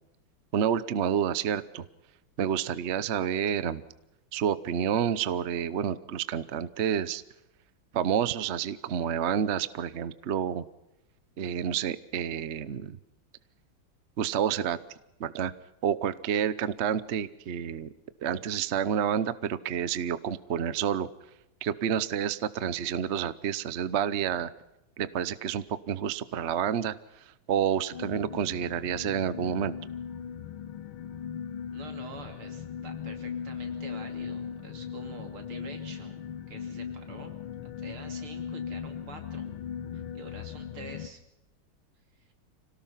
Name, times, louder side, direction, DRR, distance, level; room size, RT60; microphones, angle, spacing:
voice 1, 0.5-1.8 2.4-3.8 4.3-7.2 7.9-10.6 11.4-13.0 14.2-14.8 15.2-15.5 15.8-17.9 18.2-21.1 21.6-24.5 25.0-26.9 27.5-29.7, right 8 dB, 55° right, 16 dB, 0.8 m, -29 dB
sound 1, 27.9-41.1, left 7 dB, 75° left, 1.9 m, -38 dB
voice 2, 31.7-37.4 37.6-39.5 39.9-41.2 42.2-42.3, right 4 dB, 90° right, 5 dB, 3.7 m, -47 dB
26.0 x 18.0 x 5.7 m, 0.89 s
omnidirectional pair, 2.3 m